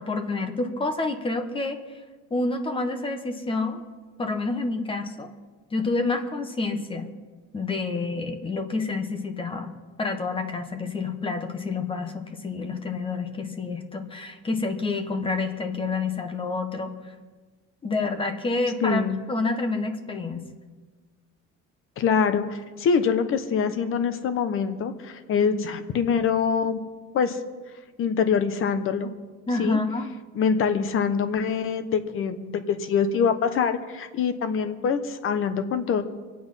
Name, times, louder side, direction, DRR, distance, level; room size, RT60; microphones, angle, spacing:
voice 1, 0.0-2.0 2.3-3.8 4.2-5.3 5.7-7.1 7.5-9.7 10.0-17.1 17.8-20.5 29.5-30.1, left 3 dB, 15° left, 7 dB, 1.1 m, -28 dB
voice 2, 18.8-19.2 22.0-26.8 27.1-27.4 28.0-29.1 29.6-29.8 30.3-36.0, left 6 dB, 45° left, 9 dB, 1.1 m, -24 dB
24.5 x 8.7 x 5.6 m, 1.4 s
cardioid pair, 170°, 31 cm